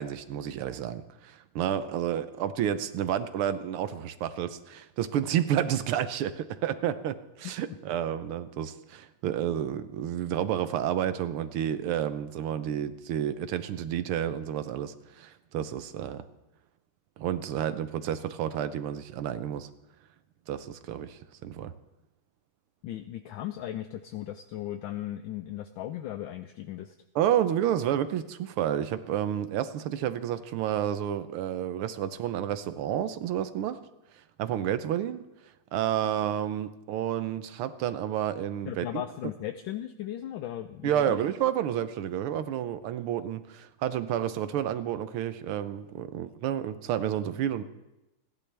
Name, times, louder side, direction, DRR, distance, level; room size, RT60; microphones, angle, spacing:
voice 1, 0.0-16.2 17.2-19.7 20.5-21.7 27.1-33.8 34.4-35.3 35.7-38.9 40.8-47.6, right 10 dB, 80° right, 12 dB, 1.7 m, -30 dB
voice 2, 22.8-26.9 38.7-41.2, left 12 dB, 75° left, 9 dB, 1.3 m, -37 dB
29.0 x 11.0 x 3.4 m, 0.97 s
omnidirectional pair, 2.4 m